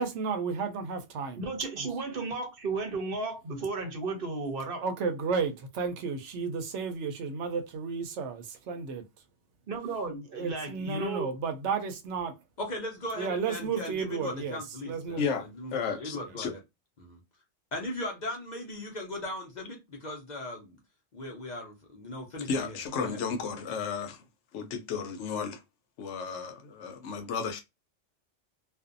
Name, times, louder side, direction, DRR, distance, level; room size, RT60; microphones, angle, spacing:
voice 1, 0.0-1.5 4.8-9.0 10.4-12.3 13.2-14.6 14.9-15.4, right 5 dB, 80° right, 0.9 m, -32 dB
voice 2, 1.4-4.8 9.7-11.3, right 3 dB, 55° right, 0.8 m, -34 dB
voice 3, 12.6-15.2 15.5-16.6 17.0-17.2 17.7-20.8 21.1-23.2, left 1 dB, 45° left, 0.6 m, -38 dB
voice 4, 15.2-16.5 22.5-24.2 24.5-25.6 26.0-27.6, left 5 dB, 80° left, 0.9 m, -33 dB
2.5 x 2.2 x 2.5 m
omnidirectional pair, 1.2 m